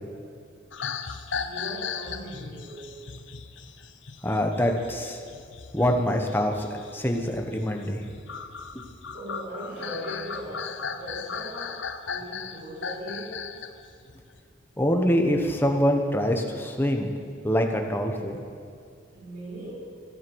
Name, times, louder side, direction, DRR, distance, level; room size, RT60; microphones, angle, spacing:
sound 1, 0.7-13.7 14.1-14.4, left 6 dB, 65° left, 0.7 m, -37 dB
voice 1, 1.4-3.1 9.1-13.5 19.1-19.7, equal, 50° right, -7 dB, 4.1 m, -39 dB
voice 2, 4.2-5.2 5.7-6.7 6.9-8.0 14.8-17.1 17.4-18.4, equal, 10° left, 3 dB, 1.0 m, -24 dB
12.5 x 10.5 x 7.1 m, 2.3 s
head